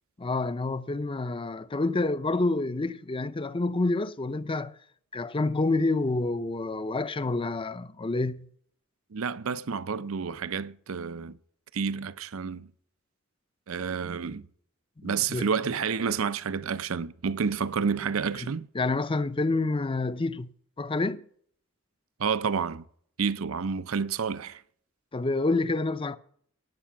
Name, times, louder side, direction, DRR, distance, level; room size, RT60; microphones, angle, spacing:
voice 1, 0.2-4.7 5.1-8.5 15.0-15.5 18.4-21.2 25.1-26.2, left 2 dB, 25° left, 0.6 m, -28 dB
voice 2, 9.1-11.4 11.7-12.7 13.7-14.5 15.0-18.7 22.2-22.8 23.2-24.6, right 6 dB, 75° right, 0.6 m, -29 dB
17.5 x 8.4 x 5.9 m
head